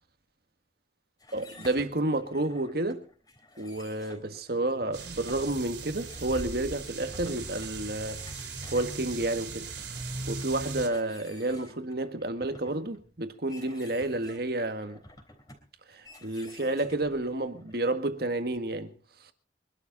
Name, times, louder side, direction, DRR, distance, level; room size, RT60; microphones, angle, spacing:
sound 1, 1.2-18.6, left 2 dB, 20° left, 3.6 m, -52 dB
voice 1, 1.3-3.1 3.6-8.2 8.7-15.0 15.9-18.9 19.2-19.3, right 2 dB, 55° right, 1.7 m, -30 dB
sound 2, 4.9-10.9, right 3 dB, 75° right, 3.5 m, -38 dB
24.0 x 12.0 x 4.0 m
head